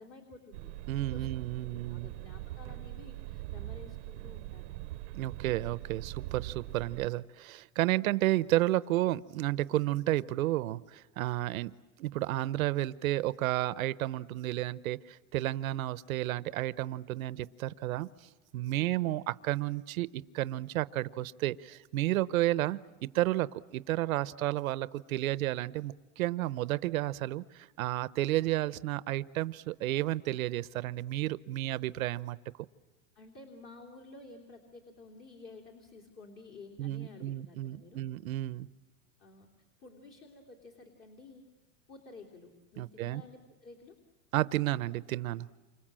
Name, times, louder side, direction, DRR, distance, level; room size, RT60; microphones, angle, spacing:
voice 1, 0.0-1.3 1.7-5.0 18.7-19.1 33.1-38.0 39.2-39.5 39.8-41.4 41.9-43.9, left 3 dB, 30° left, 2 dB, 3.1 m, -52 dB
sound 1, 0.5-7.1, right 17 dB, 60° right, 0.8 m, -42 dB
voice 2, 0.9-2.1 5.1-18.1 18.5-32.4 36.8-38.7 42.8-43.2 44.3-45.5, right 16 dB, 85° right, 15 dB, 0.9 m, -32 dB
29.0 x 26.0 x 7.5 m, 1.1 s
supercardioid pair, 150°, 41 cm